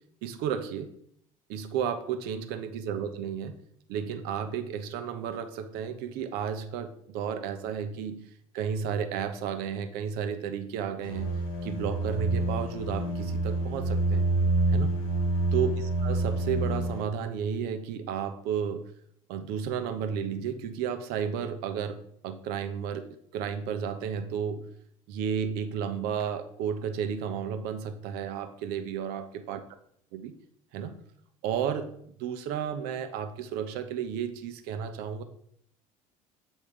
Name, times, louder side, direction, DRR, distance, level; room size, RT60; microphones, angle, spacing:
voice 1, 0.2-0.9 1.5-3.5 3.9-8.2 8.5-11.3 11.6-14.3 14.7-14.9 15.5-18.8 19.3-22.0 22.2-23.1 23.3-24.6 25.1-29.6 30.1-30.3 30.7-30.9 31.4-31.9 32.2-35.2, right 7 dB, 65° right, 8 dB, 0.8 m, -32 dB
sound 1, 11.0-17.0, right 2 dB, 85° left, 1.2 m, -27 dB
7.3 x 3.3 x 4.9 m, 0.70 s
hypercardioid pair, 70°, 17 cm